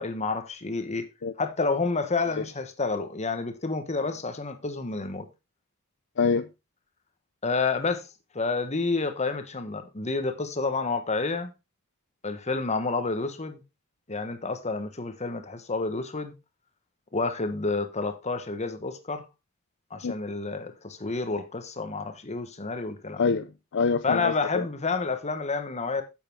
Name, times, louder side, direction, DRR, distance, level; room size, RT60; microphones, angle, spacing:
voice 1, 0.0-1.1 1.4-5.3 7.4-8.1 8.3-11.5 12.2-13.6 14.1-16.3 17.1-19.2 19.9-23.2 24.0-26.0, left 3 dB, 30° left, 1.3 m, -29 dB
voice 2, 6.2-6.5 20.0-20.2 23.2-24.7, left 5 dB, 55° left, 0.6 m, -26 dB
9.2 x 7.7 x 3.6 m
head